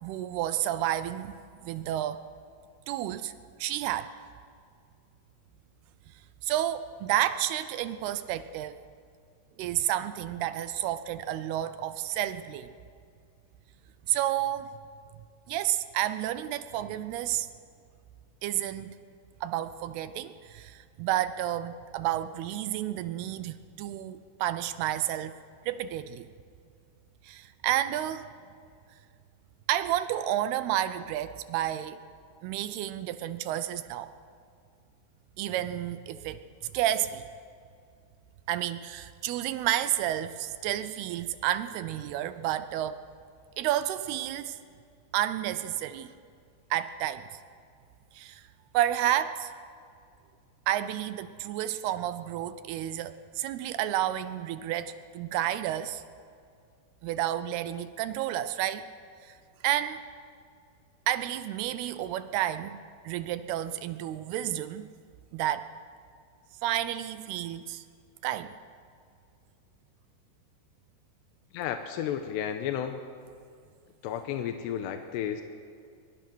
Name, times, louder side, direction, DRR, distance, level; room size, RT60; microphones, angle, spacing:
voice 1, 0.0-2.3 2.9-3.3 3.6-4.1 6.4-8.8 9.6-12.7 14.1-14.7 15.5-17.5 18.4-18.9 19.4-25.4 25.7-26.3 27.2-28.3 29.7-32.0 32.4-34.1 35.4-36.4 36.7-37.2 38.5-43.0 43.6-44.6 45.1-46.1 46.7-47.3 48.1-48.5 48.7-49.5 50.7-56.0 57.0-58.9 59.2-59.4 59.6-60.0 61.1-62.8 63.0-64.9 65.3-65.7 66.6-67.8 68.2-68.5, right 12 dB, 80° right, 12 dB, 2.5 m, -30 dB
voice 2, 71.5-73.0 74.0-75.4, left 9 dB, 90° left, 6 dB, 3.1 m, -32 dB
23.5 x 22.0 x 6.2 m, 2.3 s
omnidirectional pair, 4.9 m